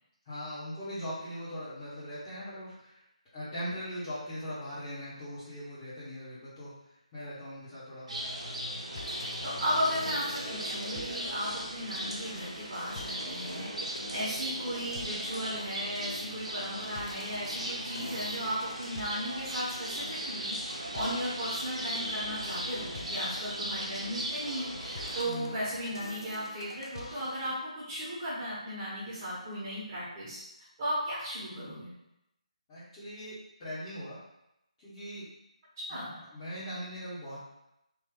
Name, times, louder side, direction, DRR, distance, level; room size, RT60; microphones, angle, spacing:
voice 1, 0.2-3.0 3.3-6.7 7.1-8.1 25.2-25.5 32.7-34.2 34.8-35.2 36.3-37.4, equal, 20° left, -15 dB, 1.1 m, -40 dB
sound 1, 8.1-25.2, right 1 dB, 60° right, 0.8 m, -37 dB
sound 2, 8.9-27.5, left 2 dB, 40° left, 0.5 m, -47 dB
voice 2, 9.1-30.4 30.8-31.9 35.9-36.2, equal, 30° right, -9 dB, 1.1 m, -36 dB
3.1 x 2.5 x 3.7 m, 0.86 s
figure-of-eight pair, 155°, 4 cm